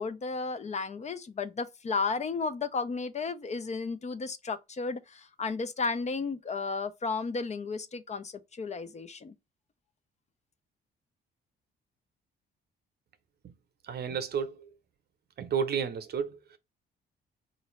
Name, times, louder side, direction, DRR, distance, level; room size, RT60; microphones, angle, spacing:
voice 1, 0.0-9.3, left 4 dB, 35° left, 0.5 m, -33 dB
voice 2, 13.9-14.7 15.4-16.4, right 7 dB, 55° right, 0.7 m, -31 dB
4.0 x 2.5 x 3.0 m
cardioid pair, 90°, 20 cm